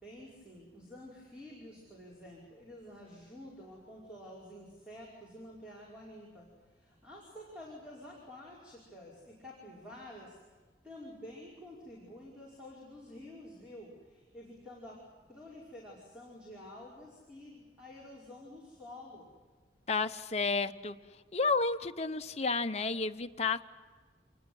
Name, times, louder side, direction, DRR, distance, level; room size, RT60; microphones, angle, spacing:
voice 1, 0.0-10.4 10.8-19.3, left 1 dB, 5° right, -5 dB, 5.2 m, -50 dB
voice 2, 19.9-20.9 21.3-23.6, left 4 dB, 35° left, 7 dB, 0.9 m, -31 dB
27.5 x 20.5 x 7.9 m, 1.5 s
head